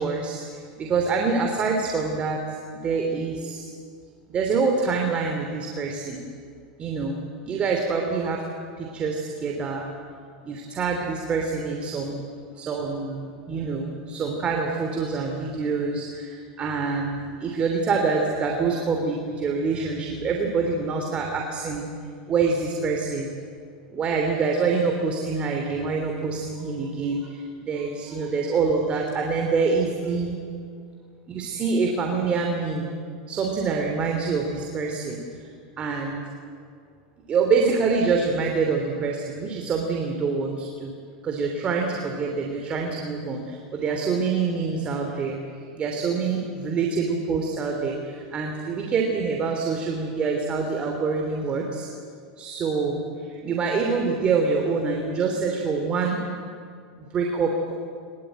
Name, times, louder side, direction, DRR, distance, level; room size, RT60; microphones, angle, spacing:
voice 1, 0.0-2.4 2.7-3.7 4.3-6.3 6.8-8.4 8.8-9.9 10.4-12.3 12.5-21.9 22.3-23.4 23.9-30.3 31.3-32.9 33.3-35.5 35.8-36.2 37.3-40.9 41.2-45.4 45.8-51.9 52.4-56.2 57.0-57.7, right 4 dB, 25° right, 2 dB, 3.0 m, -26 dB
21.5 x 21.5 x 9.3 m, 2.2 s
supercardioid pair, 140°, 4 cm